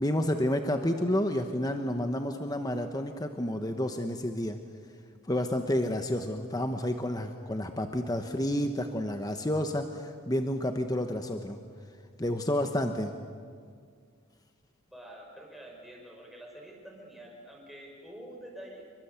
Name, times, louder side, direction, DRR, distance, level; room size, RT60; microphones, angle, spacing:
voice 1, 0.0-4.6 5.2-11.6 12.2-13.1, left 1 dB, 20° left, 6 dB, 1.1 m, -30 dB
voice 2, 14.9-18.8, right 1 dB, ahead, -1 dB, 5.9 m, -47 dB
27.5 x 23.5 x 8.3 m, 2.1 s
head